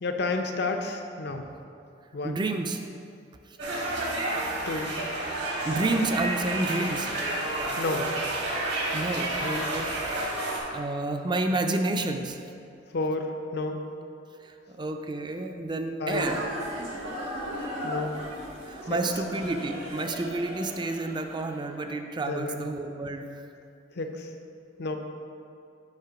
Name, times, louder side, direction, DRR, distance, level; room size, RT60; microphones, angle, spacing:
voice 1, 0.0-1.4 2.1-2.4 4.7-4.9 7.8-8.1 9.4-9.7 12.9-13.8 16.0-16.3 17.8-18.2 18.9-19.0 22.3-22.6 23.9-24.3 24.8-24.9, left 3 dB, 60° left, 5 dB, 0.6 m, -30 dB
voice 2, 2.2-2.8 3.5-3.6 4.5-4.6 5.6-7.2 8.9-9.8 10.4-12.4 14.4-16.4 18.6-23.4, right 2 dB, 25° right, 5 dB, 0.4 m, -30 dB
sound 1, 3.6-10.6, right 2 dB, 65° right, 1.3 m, -30 dB
sound 2, 16.1-21.6, equal, 90° right, 1.6 m, -36 dB
6.6 x 4.2 x 5.8 m, 2.5 s
head